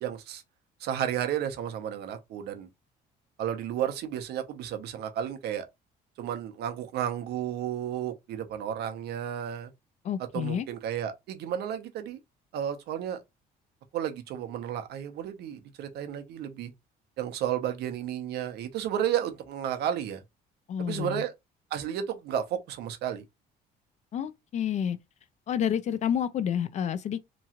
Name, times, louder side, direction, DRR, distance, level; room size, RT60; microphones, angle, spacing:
voice 1, 0.0-0.4 0.8-2.7 3.4-5.7 6.2-9.7 10.3-12.2 12.5-13.2 13.9-16.7 17.2-20.2 20.8-21.3 21.7-23.2, right 10 dB, 75° right, 0.7 m, -32 dB
voice 2, 10.0-10.7 20.7-21.2 24.1-25.0 25.5-27.2, left 9 dB, 45° left, 0.4 m, -29 dB
3.0 x 2.4 x 2.8 m
cardioid pair, 110°, 17 cm